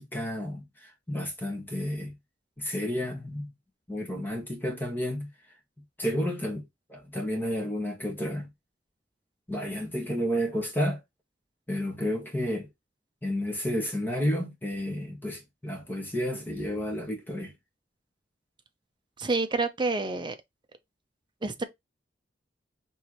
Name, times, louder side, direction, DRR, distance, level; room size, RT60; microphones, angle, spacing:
voice 1, 0.0-2.1 2.6-3.5 3.9-5.3 6.0-6.6 6.9-8.5 9.5-11.0 11.7-12.7 13.2-17.5, equal, 10° left, 1.5 m, -31 dB
voice 2, 19.2-20.4 21.4-21.6, right 3 dB, 25° right, 0.6 m, -28 dB
4.4 x 3.2 x 3.0 m
head